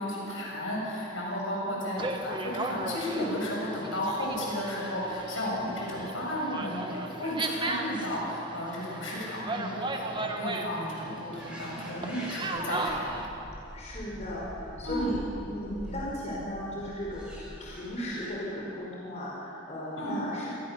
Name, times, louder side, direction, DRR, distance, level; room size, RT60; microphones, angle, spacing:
voice 1, 0.0-13.4 14.8-15.2 20.0-20.2, left 1 dB, 70° left, -3 dB, 7.6 m, -33 dB
voice 2, 1.2-1.8 13.7-15.2 15.5-20.5, equal, 35° left, -5 dB, 4.8 m, -36 dB
sound 1, 2.0-13.3, right 2 dB, 25° right, 1.6 m, -36 dB
Zoo Villa Dolores, 11.3-18.3, equal, 5° right, 7.9 m, -44 dB
27.0 x 20.5 x 6.8 m, 3.0 s
head